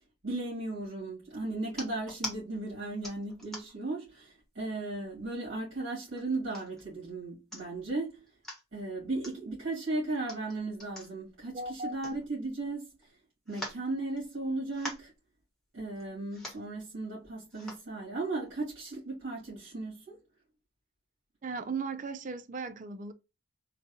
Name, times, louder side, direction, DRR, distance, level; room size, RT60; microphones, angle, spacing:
voice 1, 0.2-8.3 8.7-12.9 13.5-15.1 15.7-20.2, right 2 dB, 75° right, 2.0 m, -36 dB
sound 1, 1.7-2.4 3.0-3.9 4.4-4.6 4.9-5.5 6.2-6.8 7.2-7.3 7.5-7.9 8.3-8.6 9.2-9.4 10.1-12.7 13.0-13.1 13.5-14.4 14.7-15.2 16.0-16.1 16.3-16.7 17.5-17.9 18.5-18.6, left 1 dB, ahead, 1.1 m, -43 dB
voice 2, 11.5-11.9 21.4-23.1, right 4 dB, 40° right, 0.5 m, -37 dB
4.0 x 2.3 x 2.7 m
head